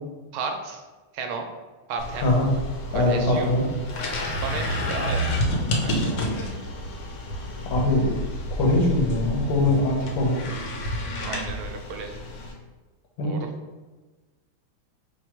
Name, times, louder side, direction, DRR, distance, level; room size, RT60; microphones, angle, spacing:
voice 1, 0.3-0.8 1.1-1.5 1.9-2.4 2.9-3.5 4.3-5.3 5.8-6.3 11.2-12.2 13.2-13.5, right 5 dB, 75° right, 3 dB, 1.4 m, -33 dB
sound 1, 2.0-12.5, left 1 dB, 65° left, 1.1 m, -30 dB
voice 2, 2.9-3.7 5.0-5.1 7.7-8.2 8.6-10.4 13.2-13.3, left 1 dB, 90° left, -1 dB, 2.0 m, -22 dB
4.4 x 2.3 x 4.4 m, 1.3 s
omnidirectional pair, 2.4 m